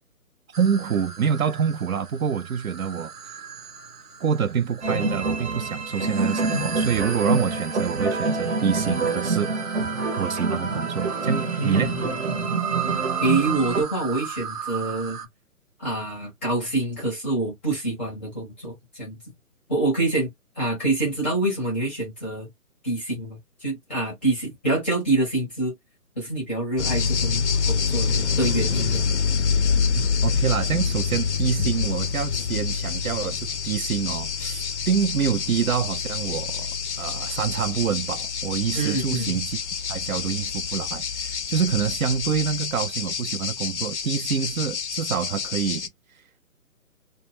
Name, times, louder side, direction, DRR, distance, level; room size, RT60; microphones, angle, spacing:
sound 1, 0.5-15.3, right 7 dB, 85° right, 0.9 m, -36 dB
voice 1, 0.6-3.1 4.2-9.5 10.2-11.9 29.9-36.7 37.0-39.6 39.9-45.9, right 7 dB, 65° right, 0.5 m, -26 dB
sound 2, 4.8-13.8, right 3 dB, 50° right, 0.9 m, -26 dB
voice 2, 11.6-12.5 13.2-15.2 15.8-19.1 19.7-22.5 22.8-25.7 26.2-29.0 38.7-39.4, right 2 dB, 10° left, 0.6 m, -26 dB
sound 3, 26.8-45.9, left 6 dB, 50° left, 0.5 m, -27 dB
2.3 x 2.1 x 3.0 m
figure-of-eight pair, 145°, 45 cm